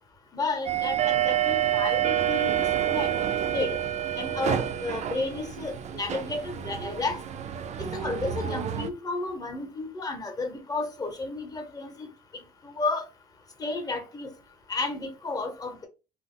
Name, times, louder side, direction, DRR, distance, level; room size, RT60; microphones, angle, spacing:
voice 1, 0.3-3.1 3.5-3.8 4.2-7.2 7.9-12.1 12.3-13.0 13.6-14.3 14.7-15.9, left 3 dB, 20° left, 0.8 m, -32 dB
sound 1, 0.7-8.9, right 10 dB, 45° right, 0.4 m, -28 dB
2.9 x 2.0 x 3.5 m
cardioid pair, 110°, 17 cm